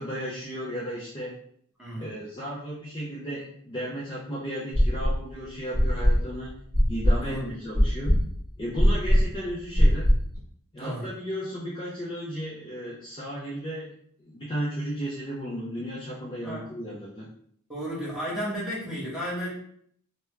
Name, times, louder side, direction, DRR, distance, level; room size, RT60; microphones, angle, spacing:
voice 1, 0.0-1.3 2.0-6.6 6.9-8.2 8.6-10.1 10.7-13.9 14.2-17.3, equal, 20° left, -6 dB, 0.5 m, -34 dB
voice 2, 1.8-2.1 7.2-7.5 10.8-11.1 16.4-16.7 17.7-19.5, equal, ahead, -7 dB, 1.1 m, -33 dB
sound 1, 4.7-5.3 5.7-10.4, equal, 35° right, 1.4 m, -21 dB
3.4 x 2.1 x 3.3 m, 0.64 s
head